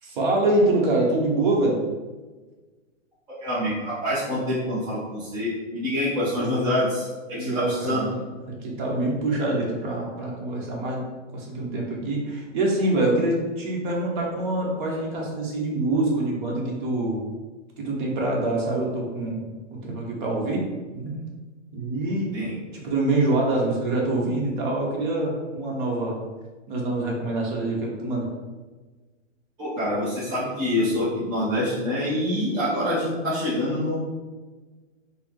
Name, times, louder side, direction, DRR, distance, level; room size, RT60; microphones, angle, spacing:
voice 1, 0.0-1.8 7.3-8.2 8.6-11.0 11.3-17.2 17.8-19.4 19.7-20.6 20.9-21.2 21.7-22.3 22.8-26.2 26.7-28.3, right 2 dB, 40° right, -2 dB, 1.0 m, -25 dB
voice 2, 3.4-8.1 22.3-22.5 29.6-34.0, left 1 dB, 10° right, -10 dB, 0.5 m, -26 dB
4.3 x 2.1 x 3.6 m, 1.3 s
hypercardioid pair, 150°, 38 cm